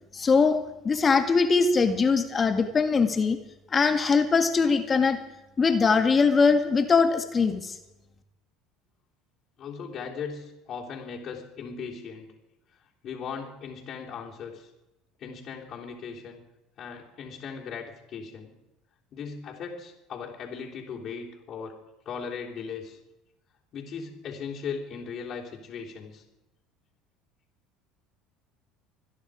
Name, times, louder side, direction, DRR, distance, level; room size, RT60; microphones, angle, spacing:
voice 1, 0.1-0.6 0.8-3.4 3.7-5.2 5.6-7.7, left 4 dB, 30° left, 7 dB, 1.8 m, -22 dB
voice 2, 9.6-12.3 13.0-14.7 15.2-16.4 16.8-18.5 19.1-21.8 22.1-23.0 23.7-26.2, left 6 dB, 50° left, -4 dB, 3.6 m, -38 dB
26.0 x 10.5 x 5.0 m, 0.96 s
supercardioid pair, 85°, 0 cm